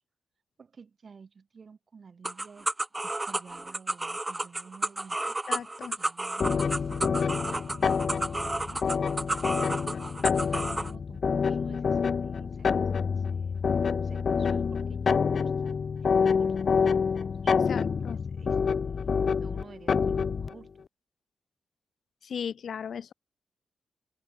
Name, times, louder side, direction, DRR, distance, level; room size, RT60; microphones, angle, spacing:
voice 1, 0.6-2.7 2.9-5.4 6.0-7.0 7.4-9.3 9.6-10.2 10.5-12.9 13.2-13.6 14.0-15.7 16.0-16.6 17.4-18.6 19.4-20.7, right 5 dB, 50° right, 6.8 m, -52 dB
sound 1, 2.2-10.9, right 2 dB, 20° right, 1.6 m, -32 dB
voice 2, 5.5-6.0 17.7-18.2 22.2-23.1, left 7 dB, 70° left, 3.4 m, -36 dB
sound 2, 6.4-20.5, left 6 dB, 55° left, 0.4 m, -27 dB
open air
cardioid pair, 85°, 0 cm